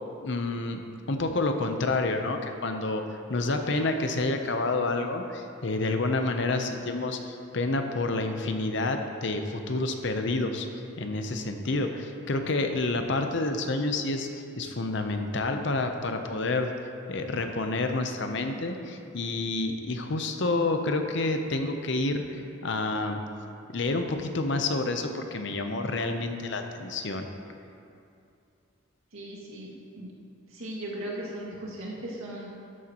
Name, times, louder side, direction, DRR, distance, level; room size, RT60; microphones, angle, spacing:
voice 1, 0.2-0.8 1.1-10.7 11.0-16.7 17.1-23.2 23.7-27.3, left 2 dB, 60° left, 5 dB, 0.7 m, -29 dB
voice 2, 29.1-30.1 30.5-32.5, right 1 dB, 80° right, -5 dB, 2.1 m, -38 dB
12.5 x 9.1 x 3.0 m, 2.6 s
head